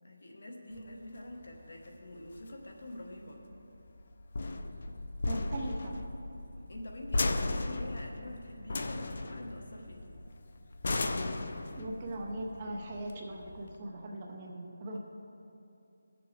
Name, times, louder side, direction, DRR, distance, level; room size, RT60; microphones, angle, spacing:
voice 1, 0.0-3.4 6.7-10.2, left 1 dB, 60° left, 1 dB, 1.2 m, -46 dB
sound 1, 0.7-13.7, left 2 dB, 40° left, 0.4 m, -36 dB
voice 2, 5.3-6.0 11.8-15.0, right 1 dB, 20° right, 0 dB, 0.7 m, -39 dB
17.0 x 6.8 x 3.3 m, 2.7 s
figure-of-eight pair, 175°, 0 cm